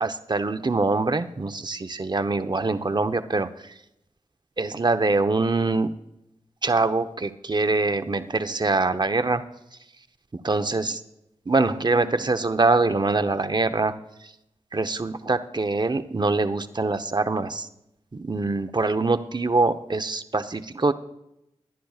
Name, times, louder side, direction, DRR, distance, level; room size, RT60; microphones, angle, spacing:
voice 1, 0.0-3.5 4.6-5.9 6.6-9.4 10.4-11.0 11.5-13.9 14.7-17.7 18.1-20.9, right 3 dB, 40° right, 9 dB, 0.8 m, -24 dB
21.5 x 10.0 x 2.4 m, 0.85 s
cardioid pair, 40°, 12 cm